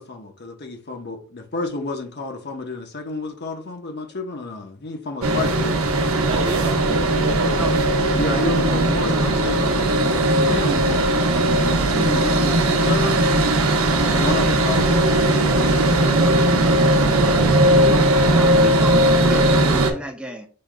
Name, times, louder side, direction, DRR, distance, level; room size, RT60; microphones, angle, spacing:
voice 1, 0.0-5.7 8.1-11.0 11.3-13.2 14.1-15.0 15.4-16.4, left 3 dB, 50° left, 0.9 m, -30 dB
sound 1, 5.2-19.9, right 1 dB, 80° right, 0.8 m, -18 dB
voice 2, 6.2-7.7, right 2 dB, 65° right, 1.1 m, -30 dB
voice 3, 17.6-20.5, right 1 dB, 5° right, 0.6 m, -31 dB
6.5 x 3.6 x 2.2 m
head